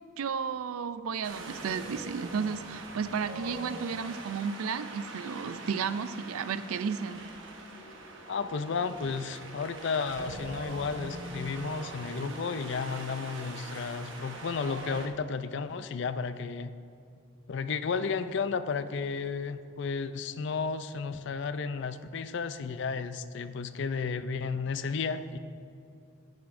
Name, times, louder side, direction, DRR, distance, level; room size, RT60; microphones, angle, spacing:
voice 1, 0.2-7.2, right 6 dB, 80° right, 13 dB, 0.4 m, -33 dB
Wind, 1.2-15.1, right 2 dB, 60° right, 1.0 m, -43 dB
Wind instrument woodwind instrument, 8.2-14.9, equal, 15° right, 1.4 m, -57 dB
voice 2, 8.3-16.7 17.5-25.4, left 5 dB, 55° left, 12 dB, 0.4 m, -33 dB
sound 1, 11.9-15.2 15.5-15.7, right 6 dB, 30° right, 1.1 m, -54 dB
11.0 x 10.5 x 2.6 m, 2.5 s
head